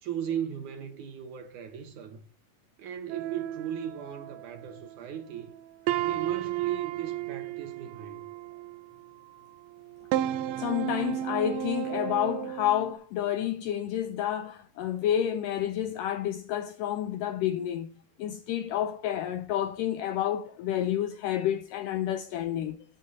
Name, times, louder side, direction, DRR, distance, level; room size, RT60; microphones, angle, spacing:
voice 1, 0.0-2.2 2.8-5.5 6.0-8.3, right 9 dB, 70° right, 2.0 m, -37 dB
sound 1, 3.1-4.9 5.4-5.6 5.9-9.1 9.7-12.9, right 13 dB, 85° right, 2.7 m, -33 dB
voice 2, 10.6-17.9 18.2-22.8, left 11 dB, 90° left, 1.9 m, -29 dB
17.0 x 8.1 x 2.7 m
omnidirectional pair, 4.5 m